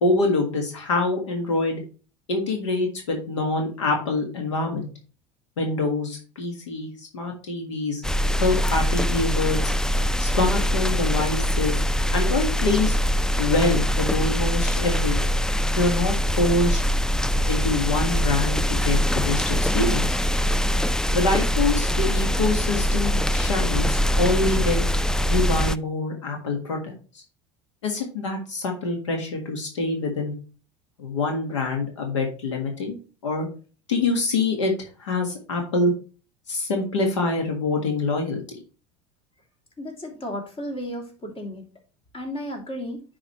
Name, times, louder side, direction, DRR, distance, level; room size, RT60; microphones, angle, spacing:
voice 1, 0.0-1.8 2.3-4.9 5.6-8.0 8.4-9.7 10.2-11.8 12.1-13.0 13.4-15.3 15.8-16.8 17.5-19.0 19.2-20.2 21.1-24.8 25.3-27.2 27.8-30.3 31.0-33.0 33.2-33.5 33.9-34.7 35.0-35.9 36.5-38.4, left 3 dB, 85° left, 3 dB, 1.6 m, -25 dB
sound 1, 8.0-25.8, equal, 5° left, 0.3 m, -23 dB
voice 2, 39.8-41.6 42.1-43.0, equal, 35° left, 2 dB, 2.9 m, -33 dB
10.5 x 4.9 x 3.1 m, 0.37 s
hypercardioid pair, 80°, 15 cm